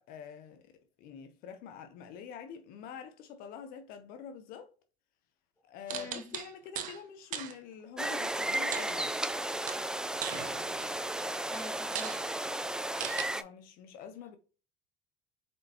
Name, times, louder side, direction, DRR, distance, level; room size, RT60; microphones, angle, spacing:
voice 1, 0.0-4.7 5.6-9.2 13.4-14.4, left 7 dB, 65° left, 0.7 m, -46 dB
voice 2, 5.9-6.3 11.5-12.3, left 2 dB, 15° left, 1.4 m, -46 dB
sound 1, 5.9-7.0 7.3-7.5 8.7-9.4 9.7-11.0 11.5-11.6 11.9-12.2 13.0-13.2, right 9 dB, 50° right, 0.8 m, -38 dB
sound 2, 8.0-13.4, right 1 dB, 5° right, 0.4 m, -34 dB
4.4 x 4.3 x 2.8 m
supercardioid pair, 95°, 16 cm